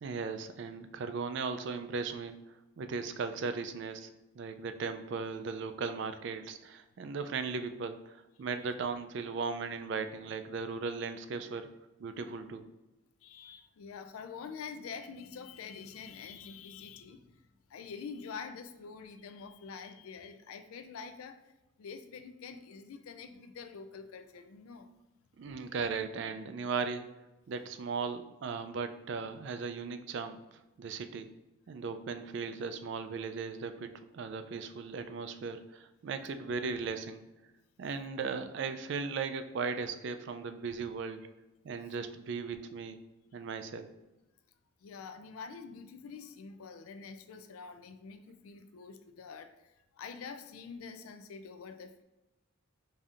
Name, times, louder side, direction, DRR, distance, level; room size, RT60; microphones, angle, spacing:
voice 1, 0.0-2.3 2.8-4.1 4.4-11.7 12.0-12.7 25.4-27.0 27.5-30.4 30.8-31.3 31.7-37.3 37.8-41.2 41.6-43.0 43.3-43.9, right 5 dB, 55° right, 9 dB, 0.3 m, -37 dB
voice 2, 13.2-17.3 17.7-21.4 21.8-24.9 44.8-52.0, left 5 dB, 85° left, 9 dB, 0.4 m, -46 dB
5.1 x 2.7 x 2.4 m, 0.99 s
head